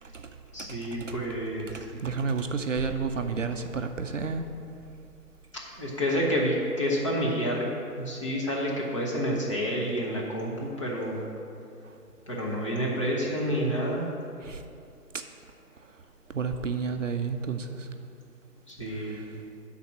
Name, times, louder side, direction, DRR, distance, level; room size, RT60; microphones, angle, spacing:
voice 1, 0.5-1.8 5.8-7.6 8.0-11.3 12.3-14.1 18.7-19.2, equal, 20° left, -3 dB, 0.8 m, -29 dB
voice 2, 1.7-4.5 14.5-14.6 16.3-17.8, right 5 dB, 55° right, 6 dB, 0.6 m, -30 dB
10.5 x 4.1 x 6.0 m, 2.5 s
figure-of-eight pair, 150°, 48 cm